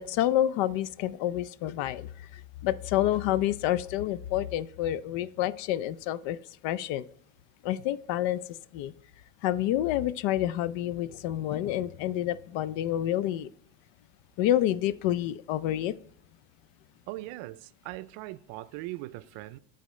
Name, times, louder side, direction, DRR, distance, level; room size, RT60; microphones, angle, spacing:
voice 1, 0.0-6.4 6.6-7.0 7.6-8.4 8.7-8.9 9.4-13.5 14.4-15.9, left 12 dB, 65° left, 0.5 m, -28 dB
voice 2, 17.1-19.6, right 18 dB, 75° right, 0.5 m, -40 dB
12.0 x 4.1 x 3.1 m
cardioid pair, 130°, 50 cm